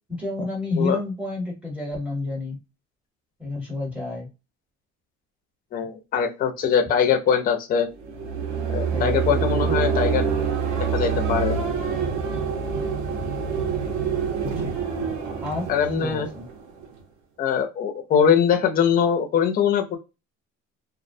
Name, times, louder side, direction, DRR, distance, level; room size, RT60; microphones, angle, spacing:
voice 1, 0.1-2.6 3.4-4.3 8.9-9.8 14.4-14.7 15.4-16.5, left 2 dB, 5° right, -1 dB, 0.7 m, -30 dB
voice 2, 5.7-7.9 8.7-10.3 10.9-11.6 15.7-16.3 17.4-20.0, left 7 dB, 30° left, 6 dB, 0.4 m, -22 dB
sound 1, 8.0-17.0, right 6 dB, 70° right, 0.8 m, -26 dB
2.3 x 2.1 x 2.6 m, 0.27 s
cardioid pair, 160°, 31 cm